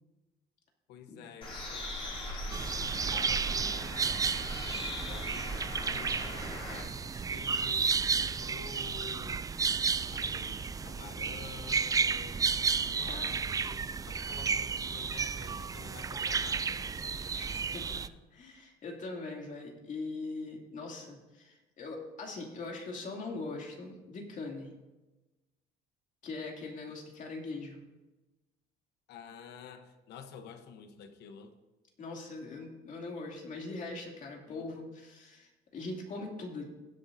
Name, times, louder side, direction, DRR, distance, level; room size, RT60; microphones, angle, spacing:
voice 1, 0.9-2.0 2.4-4.2 5.1-9.4 10.1-16.9 26.9-27.0 29.1-31.5 34.5-34.7, left 7 dB, 80° left, 8 dB, 1.0 m, -50 dB
Bird, 1.4-6.8, left 1 dB, 30° left, 3.2 m, -40 dB
sound 1, 2.5-18.1, right 5 dB, 20° right, 0.3 m, -32 dB
voice 2, 13.0-13.4 17.3-18.0 18.3-24.7 26.2-27.8 32.0-36.7, left 3 dB, 50° left, 0 dB, 2.7 m, -41 dB
19.5 x 8.5 x 2.7 m, 1.1 s
cardioid pair, 110°, 17 cm